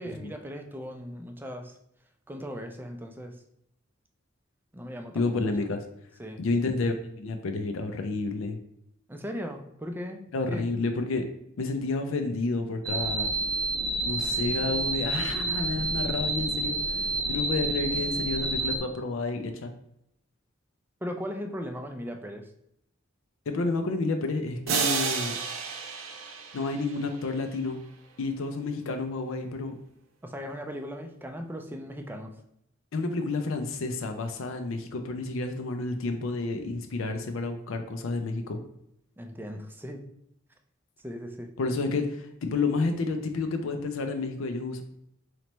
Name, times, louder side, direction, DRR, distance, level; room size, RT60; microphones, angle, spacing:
voice 1, 0.0-1.8 2.3-3.3 4.7-5.7 6.2-6.4 9.1-10.2 10.5-10.7 21.0-22.5 30.2-32.3 39.2-40.0 41.0-41.5, equal, 10° right, 4 dB, 0.4 m, -38 dB
voice 2, 5.1-5.8 6.4-8.6 10.3-11.2 11.6-13.3 14.0-17.0 17.3-19.7 23.5-25.3 26.5-27.8 28.2-29.8 32.9-38.6 41.6-44.8, left 3 dB, 80° left, 6 dB, 0.5 m, -30 dB
sound 1, 12.8-18.8, right 2 dB, 40° right, 0.7 m, -29 dB
sound 2, 24.7-27.5, right 5 dB, 85° right, 0.6 m, -31 dB
4.0 x 3.2 x 3.0 m, 0.76 s
head